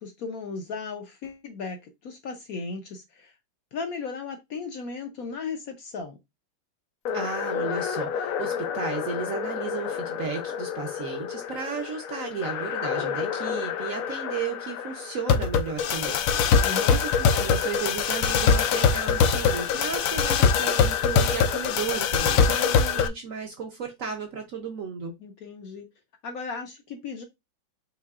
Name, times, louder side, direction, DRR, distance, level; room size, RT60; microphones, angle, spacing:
voice 1, 0.0-3.3 3.7-6.2 16.6-17.0 25.2-25.9 26.2-27.2, left 4 dB, 65° left, 4 dB, 1.0 m, -36 dB
sound 1, 7.1-23.1, left 6 dB, 90° left, 0.7 m, -25 dB
voice 2, 7.1-25.1, right 5 dB, 60° right, 3 dB, 0.9 m, -34 dB
5.6 x 3.3 x 2.4 m, 0.21 s
omnidirectional pair, 2.0 m